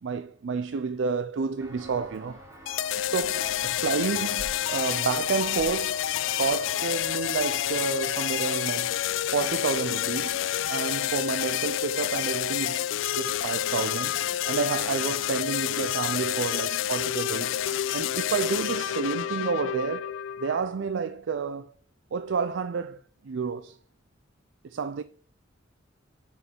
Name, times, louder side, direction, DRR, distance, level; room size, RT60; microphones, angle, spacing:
voice 1, 0.0-2.4 3.1-3.4 3.8-6.0 6.4-9.0 9.3-12.9 13.1-14.2 14.5-17.6 17.9-21.7 22.1-23.8 24.6-25.0, right 5 dB, 70° right, 0.4 m, -30 dB
Walk footsteps, 1.6-8.3, equal, 15° right, 2.4 m, -46 dB
sound 1, 2.7-20.6, left 11 dB, 85° left, 0.3 m, -29 dB
voice 2, 2.9-4.1, right 2 dB, 50° right, 2.2 m, -47 dB
6.6 x 6.3 x 4.4 m
head